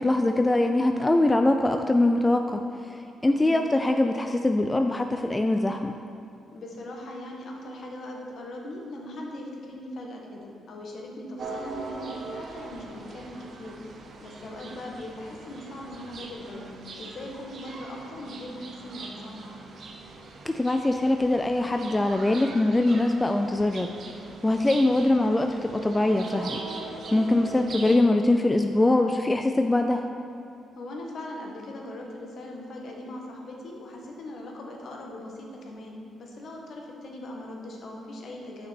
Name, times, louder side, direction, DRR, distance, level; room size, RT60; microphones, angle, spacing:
voice 1, 0.0-2.6 2.9-6.0 20.4-23.9 24.4-26.6 27.1-30.1, left 2 dB, 15° left, 5 dB, 0.3 m, -23 dB
voice 2, 3.2-3.8 6.5-13.8 14.2-19.6 27.2-27.4 30.7-38.7, left 1 dB, 60° left, 0 dB, 1.4 m, -40 dB
sound 1, 11.4-28.0, right 3 dB, 55° right, 0.8 m, -41 dB
8.7 x 6.0 x 4.4 m, 2.6 s
cardioid pair, 90°, 0 cm